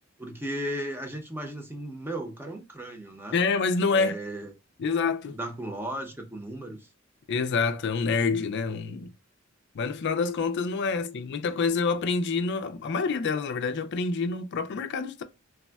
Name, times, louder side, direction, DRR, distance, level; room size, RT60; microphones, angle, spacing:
voice 1, 0.2-3.4 3.9-4.5 5.4-6.9, right 1 dB, 10° right, 0.6 m, -35 dB
voice 2, 3.3-4.2 4.8-5.4 7.3-9.1 9.7-15.2, left 4 dB, 55° left, 0.4 m, -27 dB
3.4 x 2.1 x 2.2 m
head